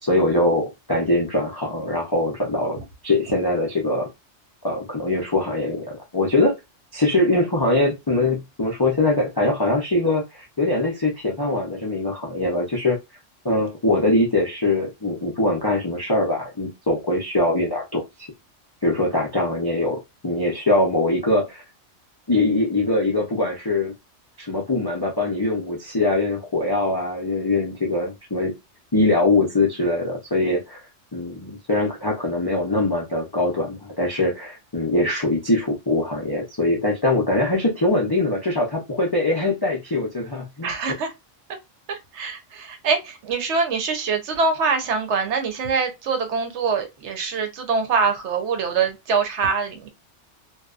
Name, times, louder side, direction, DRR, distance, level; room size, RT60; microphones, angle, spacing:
voice 1, 0.0-4.1 4.6-6.5 6.9-13.0 13.4-18.3 18.8-21.6 22.3-23.9 24.4-28.5 28.9-30.8 31.1-40.7, left 2 dB, 40° left, 0.3 m, -22 dB
voice 2, 40.6-41.1 41.9-49.9, right 5 dB, 70° right, 0.9 m, -24 dB
2.7 x 2.2 x 2.3 m
omnidirectional pair, 1.3 m